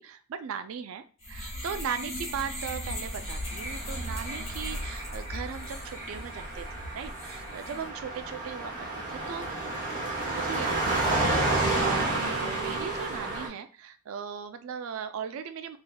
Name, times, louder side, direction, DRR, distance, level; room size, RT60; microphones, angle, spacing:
voice 1, 0.0-9.5 10.3-15.8, right 7 dB, 70° right, 9 dB, 0.3 m, -38 dB
sound 1, 1.2-7.9, equal, 30° left, 1.2 m, -37 dB
Car passing by, 3.5-13.5, right 2 dB, 40° right, 1.0 m, -31 dB
3.8 x 2.8 x 2.2 m, 0.38 s
head